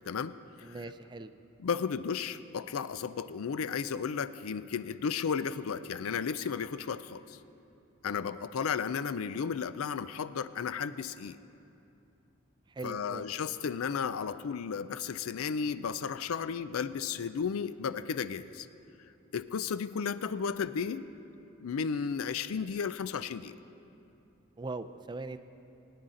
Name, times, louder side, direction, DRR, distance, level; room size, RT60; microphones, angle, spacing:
voice 1, 0.1-0.8 1.6-7.4 8.0-11.4 12.8-18.7 19.3-21.0 21.6-23.6, left 6 dB, 80° left, 14 dB, 0.4 m, -34 dB
voice 2, 0.6-1.3 8.1-8.3 12.7-13.2 24.6-25.4, right 3 dB, 20° right, 11 dB, 0.3 m, -40 dB
21.0 x 9.6 x 3.8 m, 2.7 s
head